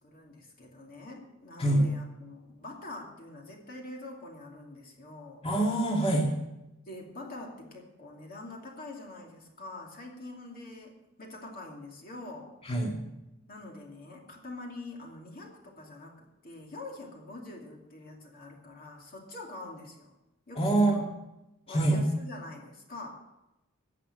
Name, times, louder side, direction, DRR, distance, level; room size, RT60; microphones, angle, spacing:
voice 1, 0.0-5.5 6.9-12.5 13.5-20.1 20.5-21.0 21.7-23.1, left 2 dB, 45° left, 0 dB, 2.5 m, -45 dB
voice 2, 5.4-6.3 12.6-13.0 20.6-21.0 21.7-22.0, right 2 dB, 30° left, -1 dB, 2.4 m, -25 dB
17.0 x 6.8 x 7.6 m, 0.94 s
head